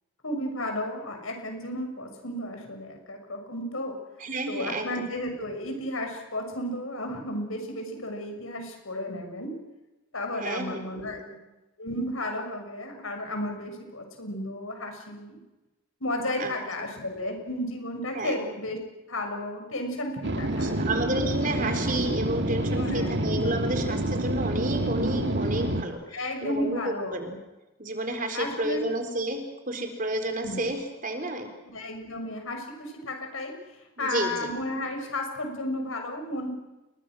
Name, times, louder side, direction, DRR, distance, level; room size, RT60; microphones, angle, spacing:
voice 1, 0.2-3.9 4.5-9.5 10.1-11.2 11.8-15.4 16.0-18.8 19.1-20.8 22.7-23.2 26.1-27.4 28.3-28.8 30.4-30.7 31.6-33.5 34.0-36.5, left 1 dB, 80° left, 4 dB, 6.7 m, -33 dB
voice 2, 4.2-5.0 10.4-11.3 16.4-16.9 18.1-18.5 20.5-26.0 26.4-27.3 27.8-31.5 34.0-34.5, right 1 dB, 40° right, 5 dB, 4.2 m, -31 dB
sound 1, 20.2-25.8, right 1 dB, 55° right, 2.1 m, -27 dB
29.0 x 22.5 x 6.4 m, 1.0 s
head